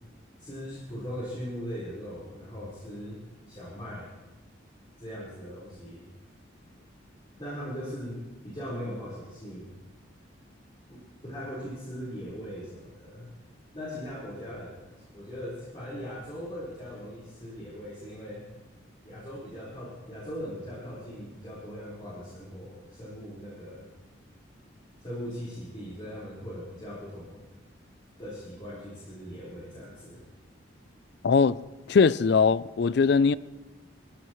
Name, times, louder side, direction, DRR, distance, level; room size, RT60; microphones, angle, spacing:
voice 1, 0.4-4.1 5.0-6.0 7.4-9.7 10.9-13.3 13.7-14.9 15.1-18.4 19.0-23.9 25.0-27.4 28.2-30.2, equal, 25° left, 4.6 m, -40 dB
voice 2, 31.2-31.6 31.9-33.4, left 5 dB, 60° left, 0.4 m, -21 dB
22.5 x 16.0 x 3.2 m
head